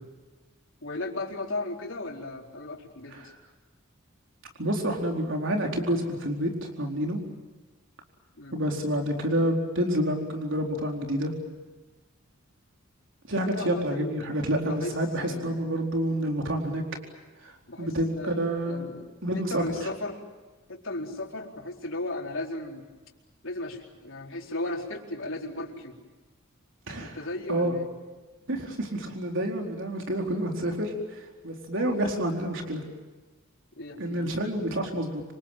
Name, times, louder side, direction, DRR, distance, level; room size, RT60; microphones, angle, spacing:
voice 1, 0.8-3.2 8.3-8.6 13.5-14.4 14.7-15.6 17.7-19.1 19.3-20.2 20.7-22.9 23.4-26.0 27.0-27.9 33.8-34.3, left 2 dB, 65° left, 0 dB, 4.4 m, -36 dB
voice 2, 4.6-7.2 8.5-11.3 13.3-16.8 17.4-17.5 17.8-18.8 19.2-19.6 26.9-27.2 27.5-27.7 28.5-32.8 34.0-35.2, right 1 dB, 60° right, 2 dB, 4.3 m, -28 dB
27.5 x 26.0 x 7.5 m, 1.3 s
head